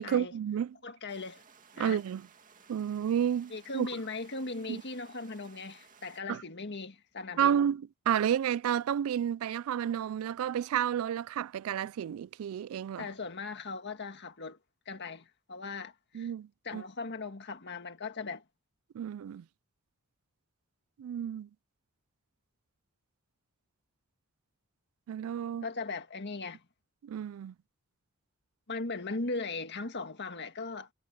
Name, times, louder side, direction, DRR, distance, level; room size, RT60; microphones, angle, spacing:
voice 1, 0.0-0.8 1.8-2.3 2.7-3.9 4.7-4.8 6.3-6.4 7.4-13.1 16.1-16.8 18.9-19.4 21.0-21.5 25.1-25.7 27.0-27.5, right 9 dB, 75° right, 0.3 m, -31 dB
voice 2, 0.8-1.4 1.7-2.0 3.5-7.6 13.0-14.6 14.9-16.3 16.7-18.4 25.6-26.6 28.7-30.9, left 3 dB, 55° left, 1.8 m, -38 dB
sound 1, 1.1-6.2, right 6 dB, 40° right, 2.1 m, -59 dB
head